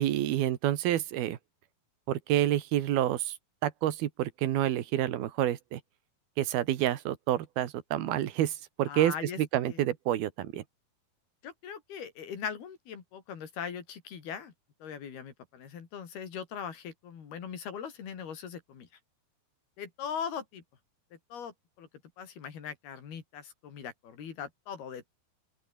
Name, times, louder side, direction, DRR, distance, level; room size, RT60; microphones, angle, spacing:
voice 1, 0.0-1.4 2.1-3.3 3.6-5.8 6.4-8.5 8.8-10.6, right 12 dB, 90° right, 3.4 m, -28 dB
voice 2, 8.9-9.8 11.4-14.5 14.8-18.9 19.8-20.6 21.3-21.9 22.2-25.1, left 7 dB, 90° left, 5.5 m, -40 dB
open air
omnidirectional pair, 4.3 m